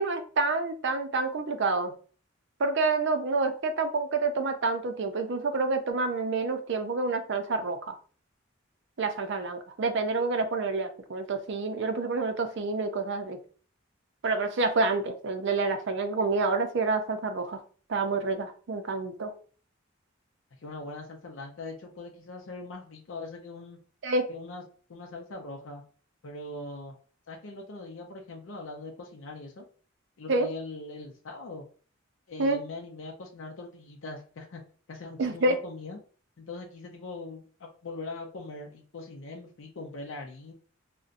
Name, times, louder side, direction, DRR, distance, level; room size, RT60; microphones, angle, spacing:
voice 1, 0.0-1.9 2.6-8.0 9.0-13.4 14.2-17.6 17.9-19.3 24.0-24.3 30.3-30.5 32.4-32.6 35.2-35.5, right 3 dB, 60° right, 7 dB, 0.5 m, -28 dB
voice 2, 20.6-23.8 24.3-24.6 24.9-25.8 26.2-26.9 27.3-29.7 30.2-31.7 32.3-34.6 34.9-36.0 36.4-40.5, left 3 dB, 65° left, 1 dB, 0.5 m, -41 dB
3.9 x 2.1 x 2.5 m, 0.41 s
head